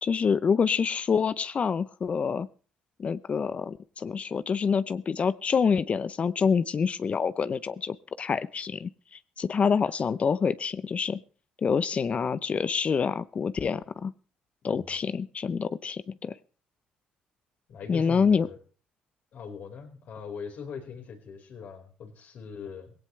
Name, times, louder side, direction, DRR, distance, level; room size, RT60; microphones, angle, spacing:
voice 1, 0.0-2.5 3.0-8.9 9.4-11.2 11.6-14.1 14.6-16.4 17.9-18.5, left 6 dB, 45° left, 16 dB, 0.7 m, -26 dB
voice 2, 17.7-18.6 19.3-22.9, left 6 dB, 65° left, 2 dB, 4.8 m, -41 dB
18.0 x 17.5 x 3.3 m, 0.38 s
supercardioid pair, 75°, 3 cm